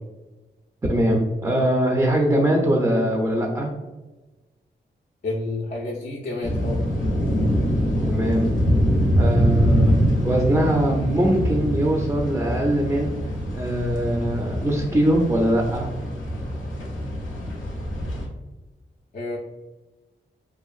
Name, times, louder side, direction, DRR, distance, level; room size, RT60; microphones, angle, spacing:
voice 1, 0.9-3.7 8.1-8.5 9.2-9.9 10.2-13.2 13.6-15.9, right 1 dB, 15° right, -1 dB, 0.5 m, -21 dB
voice 2, 5.2-6.8 19.1-19.4, left 2 dB, 45° left, -3 dB, 0.5 m, -29 dB
sound 1, 6.4-18.3, equal, 90° left, 0.6 m, -24 dB
2.6 x 2.4 x 2.4 m, 1.1 s
cardioid pair, 50°, 20 cm